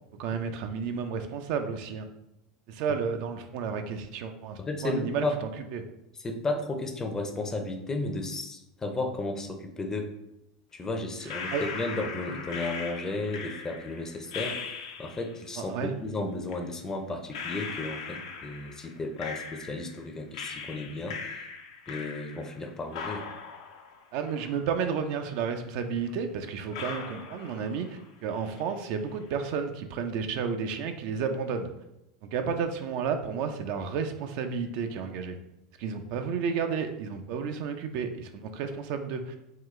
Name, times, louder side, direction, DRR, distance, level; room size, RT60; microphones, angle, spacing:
voice 1, 0.2-2.1 2.7-4.6 4.8-5.2 5.7-5.8 11.5-11.6 15.7-15.9 24.1-31.7 32.3-35.4 35.8-39.4, right 6 dB, 60° right, 7 dB, 0.4 m, -31 dB
voice 2, 4.6-5.3 6.1-10.1 10.7-21.5 21.9-23.3, left 2 dB, 20° left, 5 dB, 0.5 m, -34 dB
sound 1, 11.3-15.4 16.5-16.6 17.3-20.0 20.3-22.6 22.9-25.0 25.3-25.4 26.1-26.2 26.7-28.0 28.3-28.9, left 5 dB, 75° left, 0.5 m, -39 dB
3.7 x 2.3 x 3.1 m, 0.86 s
hypercardioid pair, 100°, 3 cm